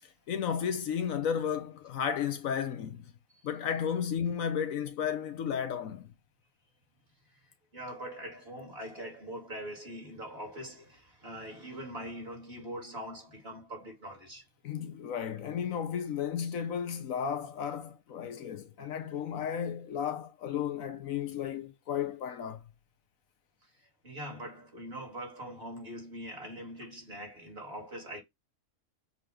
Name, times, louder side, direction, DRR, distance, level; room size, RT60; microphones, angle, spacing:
voice 1, 0.3-3.1 3.4-6.1 14.6-22.6, left 8 dB, 70° left, 1.2 m, -33 dB
voice 2, 7.7-14.5 23.6-28.2, equal, 40° right, 2.8 m, -42 dB
6.8 x 2.9 x 5.0 m
omnidirectional pair, 1.5 m